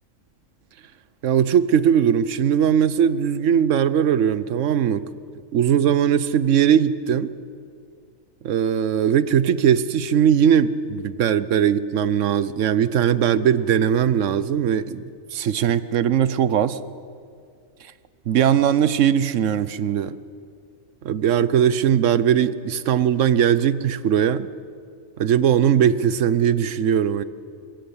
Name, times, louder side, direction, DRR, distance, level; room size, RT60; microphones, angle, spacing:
voice 1, 1.2-5.1 5.5-7.3 8.4-15.0 15.3-16.8 18.3-20.2 21.0-24.5 25.2-27.2, right 9 dB, 65° right, 16 dB, 1.1 m, -19 dB
22.0 x 15.5 x 9.6 m, 2.3 s
omnidirectional pair, 1.4 m